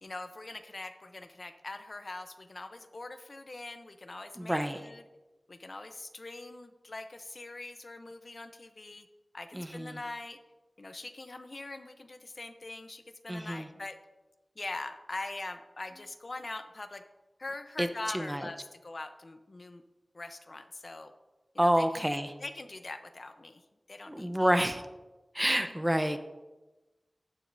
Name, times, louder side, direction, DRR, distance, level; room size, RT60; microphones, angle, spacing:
voice 1, 0.0-5.0 5.5-9.1 9.3-10.4 10.8-14.0 14.6-17.0 17.4-19.8 20.1-21.1 21.5-22.1 22.4-23.6 23.9-24.6 25.6-25.7, left 2 dB, 55° left, 8 dB, 0.7 m, -43 dB
voice 2, 4.4-4.8 9.5-10.0 13.3-13.7 17.8-17.9 18.1-18.5 21.6-22.3 24.1-24.8 25.3-26.2, equal, 10° right, 8 dB, 0.7 m, -28 dB
15.0 x 9.5 x 2.7 m, 1.1 s
wide cardioid pair, 65°, 0 cm